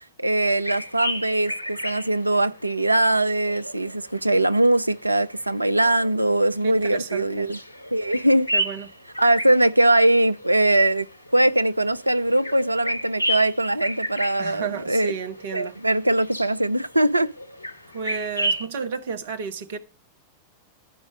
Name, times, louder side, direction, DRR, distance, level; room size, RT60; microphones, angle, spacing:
voice 1, 0.2-7.6 7.9-8.5 9.2-11.1 11.3-15.1 15.5-17.3, right 1 dB, 85° right, 0.4 m, -21 dB
sound 1, 0.6-18.7, equal, 85° left, 0.6 m, -33 dB
voice 2, 6.6-7.5 8.5-8.9 14.4-15.8 17.9-19.8, right 6 dB, 60° right, 0.9 m, -32 dB
11.0 x 5.3 x 4.8 m
figure-of-eight pair, 90°, 0 cm